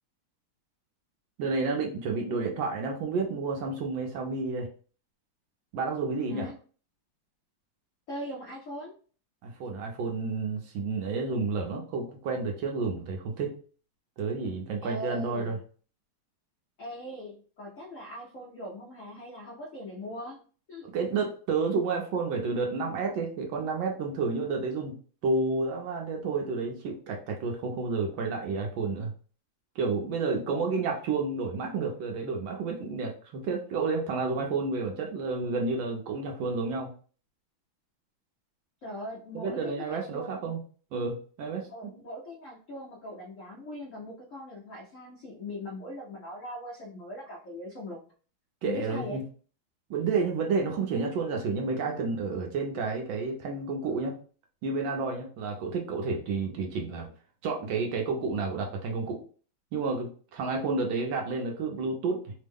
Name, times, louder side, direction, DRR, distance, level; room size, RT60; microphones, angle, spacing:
voice 1, 1.4-4.7 5.7-6.5 9.4-13.6 14.2-15.6 20.8-24.9 25.2-29.1 29.7-36.9 39.3-40.6 40.9-41.9 48.6-49.2 49.9-54.2 54.6-57.1 57.4-59.2 59.7-62.3, right 4 dB, 75° right, 2 dB, 1.3 m, -30 dB
voice 2, 8.1-8.9 14.8-15.6 16.8-20.4 20.7-20.9 30.5-30.6 38.8-40.5 41.7-48.0 48.6-49.2, left 1 dB, 70° left, -3 dB, 0.7 m, -40 dB
3.6 x 2.1 x 3.4 m, 0.41 s
omnidirectional pair, 2.4 m